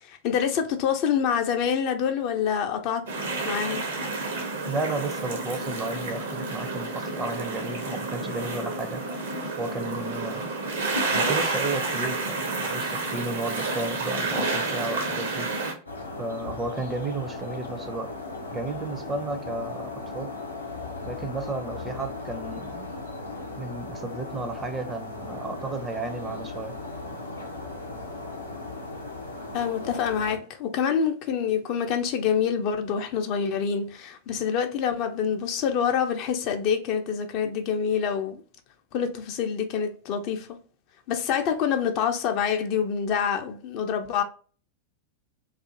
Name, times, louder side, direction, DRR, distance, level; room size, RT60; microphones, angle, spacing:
voice 1, 0.0-3.1 3.4-3.8 29.5-38.4 38.9-40.6 41.1-44.2, left 7 dB, 40° left, 0.4 m, -26 dB
sound 1, 3.1-15.7, right 3 dB, 65° right, 0.7 m, -30 dB
voice 2, 4.7-9.0 9.6-10.4 11.1-15.5 16.2-18.1 18.5-20.3 21.1-22.9 23.6-26.7, right 2 dB, 15° right, 0.5 m, -33 dB
sound 2, 15.9-30.4, left 3 dB, 80° left, 0.6 m, -37 dB
2.4 x 2.4 x 2.6 m
figure-of-eight pair, 90°, 0 cm